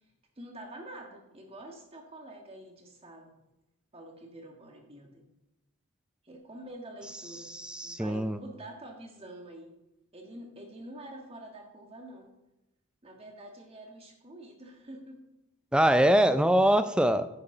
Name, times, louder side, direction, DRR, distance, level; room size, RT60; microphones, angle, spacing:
voice 1, 0.4-3.3 3.9-5.2 6.2-7.5 7.8-9.7 10.1-12.3 13.0-15.2, right 1 dB, 25° right, 2 dB, 1.6 m, -46 dB
voice 2, 7.4-8.4 15.7-17.3, right 1 dB, 5° right, 11 dB, 0.4 m, -23 dB
9.9 x 9.8 x 3.9 m, 0.93 s
head